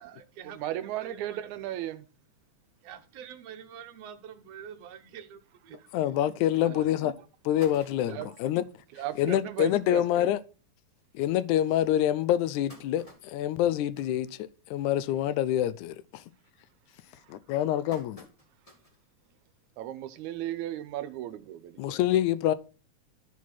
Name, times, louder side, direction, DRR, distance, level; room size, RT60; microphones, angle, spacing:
voice 1, 0.0-1.5 2.8-6.0 6.5-6.9 7.2-7.3 7.6-7.9 8.2-8.4, right 8 dB, 70° right, 1.8 m, -47 dB
voice 2, 0.5-2.1 6.6-6.9 8.1-8.3 8.9-10.1 17.2-17.4 19.8-22.0, right 13 dB, 85° right, 2.0 m, -36 dB
voice 3, 5.9-7.1 7.5-8.6 9.2-10.4 11.1-16.2 17.3-18.3 21.8-22.5, left 12 dB, 85° left, 2.0 m, -26 dB
sound 1, 7.3-8.4 9.0-9.1 9.4-9.5 9.8-10.0 10.7-10.8 11.3-11.4 12.1-15.0 15.3-15.7 16.0-16.4 17.0-19.1 19.5-19.6 20.8-20.9, left 1 dB, 15° left, 1.4 m, -53 dB
12.5 x 4.6 x 4.2 m
omnidirectional pair, 3.4 m